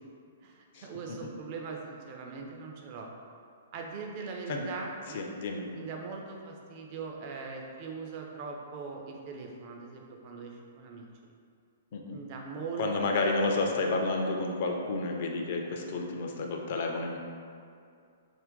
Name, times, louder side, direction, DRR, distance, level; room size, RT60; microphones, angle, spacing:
voice 1, 0.4-3.1 3.7-5.2 5.7-11.3 12.1-12.9, right 4 dB, 35° right, 0 dB, 0.4 m, -41 dB
voice 2, 5.1-5.6 11.9-12.2 12.8-17.2, left 3 dB, 45° left, 2 dB, 0.3 m, -30 dB
2.5 x 2.1 x 3.6 m, 2.4 s
figure-of-eight pair, 115°, 0 cm